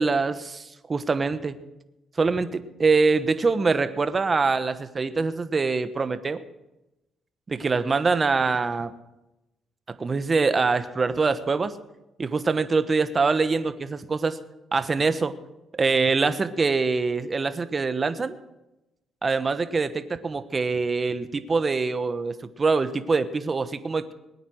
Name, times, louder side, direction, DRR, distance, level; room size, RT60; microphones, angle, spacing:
voice 1, 0.0-1.6 2.2-6.4 7.5-8.9 9.9-11.8 12.2-14.4 14.7-15.3 15.8-18.4 19.2-24.1, right 4 dB, 35° right, 12 dB, 1.1 m, -24 dB
20.5 x 9.4 x 6.4 m, 0.96 s
cardioid pair, 90°, 0 cm